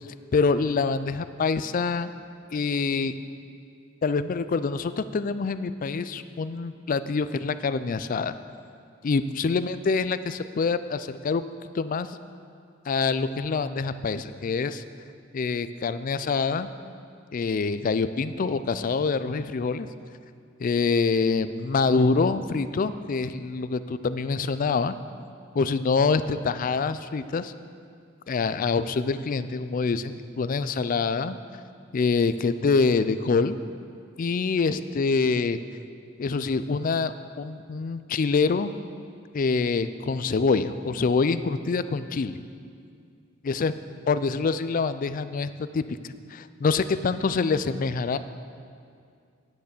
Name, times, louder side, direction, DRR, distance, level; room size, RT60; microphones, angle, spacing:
voice 1, 0.3-2.1 2.5-3.1 4.0-8.3 9.0-11.4 11.7-12.1 12.9-14.8 15.3-16.7 17.3-19.9 20.6-24.9 25.5-27.5 28.3-31.4 31.9-33.6 34.2-35.6 36.2-38.7 39.3-42.3 43.4-43.8 44.1-46.0 46.3-48.2, left 4 dB, 45° left, 13 dB, 0.4 m, -25 dB
9.4 x 7.7 x 6.6 m, 2.3 s
head